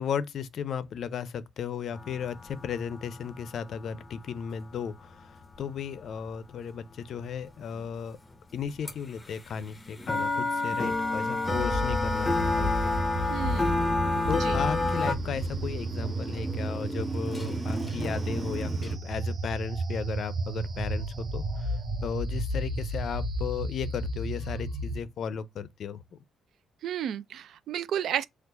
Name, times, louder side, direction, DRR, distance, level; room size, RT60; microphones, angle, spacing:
voice 1, 0.0-8.2 8.5-12.9 14.3-21.7 22.0-26.2, left 7 dB, 65° left, 0.5 m, -35 dB
sound 1, 1.9-7.9 8.3-8.4 8.6-8.9 9.2-15.2, left 3 dB, 20° left, 0.7 m, -30 dB
sound 2, 11.4-25.0, right 1 dB, 55° right, 1.0 m, -32 dB
voice 2, 13.3-13.8 14.4-14.6 26.8-28.2, right 10 dB, 70° right, 0.4 m, -32 dB
Motorcycle, 13.5-19.0, right 1 dB, ahead, 1.2 m, -38 dB
4.5 x 2.4 x 3.8 m
cardioid pair, 90°, 0 cm